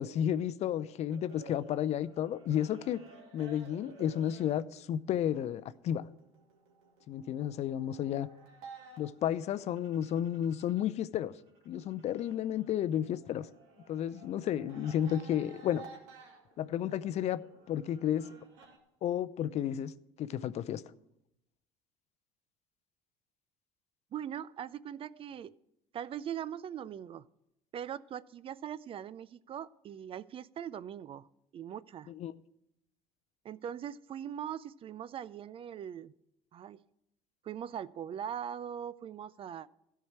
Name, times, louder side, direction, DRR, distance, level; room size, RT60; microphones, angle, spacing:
voice 1, 0.0-3.0 3.3-6.1 7.1-8.3 9.0-11.3 11.7-13.5 13.9-15.8 16.6-17.4 17.7-18.3 19.0-19.9 20.2-20.8 32.1-32.3, left 10 dB, 50° left, 0.6 m, -32 dB
sound 1, 1.1-10.9 11.2-18.8, right 4 dB, 80° right, 2.4 m, -55 dB
voice 2, 24.1-25.5 25.9-27.3 27.7-31.3 31.5-32.1 33.4-36.1 36.5-36.8 37.4-39.7, right 9 dB, 40° right, 0.4 m, -41 dB
13.5 x 4.7 x 8.8 m
supercardioid pair, 80°, 14 cm